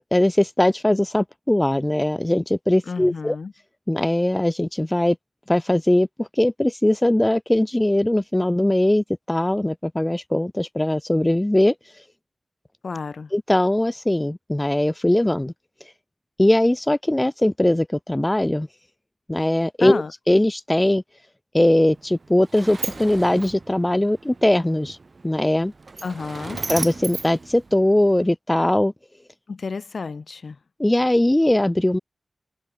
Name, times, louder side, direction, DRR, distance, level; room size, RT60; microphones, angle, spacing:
voice 1, 0.1-3.4 3.9-5.2 5.5-12.0 13.3-15.5 15.8-15.9 16.4-18.7 19.3-21.0 21.5-25.0 25.2-25.7 26.7-28.9 30.8-32.0, left 1 dB, 20° left, 0.4 m, -20 dB
voice 2, 2.9-3.5 12.8-13.3 19.8-20.1 26.0-26.6 29.5-30.6, left 4 dB, 75° left, 2.8 m, -31 dB
Sliding door, 21.9-28.3, right 3 dB, 60° right, 3.8 m, -36 dB
cardioid pair, 40°, 0 cm